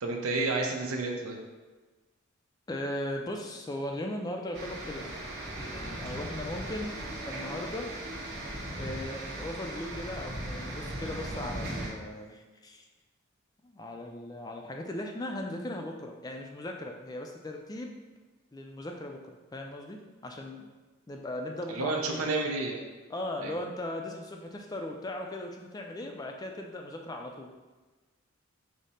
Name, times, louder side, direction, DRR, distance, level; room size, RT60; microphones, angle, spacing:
voice 1, 0.0-1.4 21.7-22.8 23.4-23.5, right 3 dB, 90° right, 2 dB, 0.6 m, -30 dB
voice 2, 2.7-5.2 5.7-7.0 7.2-7.9 8.8-12.8 13.6-18.0 18.5-20.7 21.1-22.2 23.1-27.5, left 1 dB, 20° left, 2 dB, 0.3 m, -38 dB
sound 1, 4.5-11.9, right 1 dB, 55° right, 1.0 m, -38 dB
4.9 x 2.0 x 4.1 m, 1.3 s
head